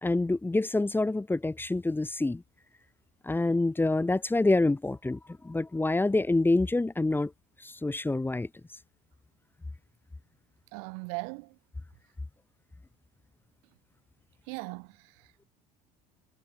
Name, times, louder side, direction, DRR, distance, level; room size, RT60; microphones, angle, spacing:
voice 1, 0.0-2.4 3.2-7.3 7.6-8.5, left 2 dB, 10° left, 1.6 m, -27 dB
voice 2, 10.7-11.6 14.5-15.5, right 40 dB or more, 80° right, 2.7 m, -39 dB
supercardioid pair, 90°, 18 cm